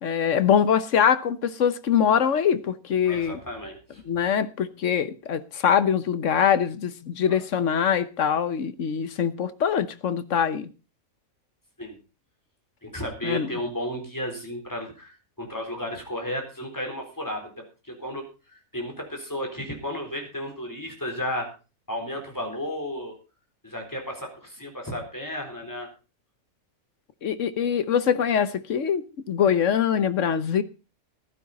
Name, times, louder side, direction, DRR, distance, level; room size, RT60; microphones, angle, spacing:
voice 1, 0.0-3.4 4.0-10.7 13.2-13.5 27.2-30.6, left 8 dB, 60° left, 1.2 m, -23 dB
voice 2, 3.1-4.0 7.3-7.4 11.8-12.0 12.8-21.5 21.9-23.1 23.6-25.9, equal, 15° left, 4.0 m, -33 dB
15.0 x 12.0 x 4.1 m
omnidirectional pair, 1.5 m